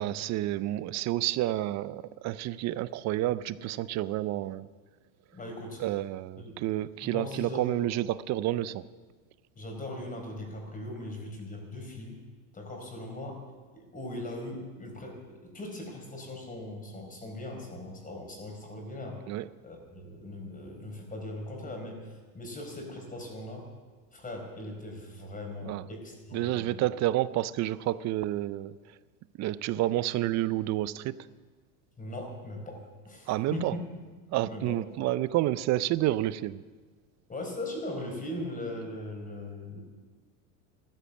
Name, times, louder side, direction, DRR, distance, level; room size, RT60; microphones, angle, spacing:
voice 1, 0.0-4.7 5.8-8.8 19.3-19.5 25.6-25.9 26.3-28.8 29.4-31.2 33.3-33.8 34.3-36.6, right 15 dB, 40° right, 17 dB, 0.5 m, -29 dB
voice 2, 5.3-5.8 6.4-6.6 7.0-7.8 9.6-12.2 12.5-13.4 13.7-19.2 19.6-22.0 22.3-23.6 24.1-26.8 32.0-33.8 34.4-34.8 37.3-39.8, left 1 dB, 20° left, 2 dB, 4.5 m, -39 dB
13.5 x 13.5 x 7.3 m, 1.4 s
supercardioid pair, 110°, 43 cm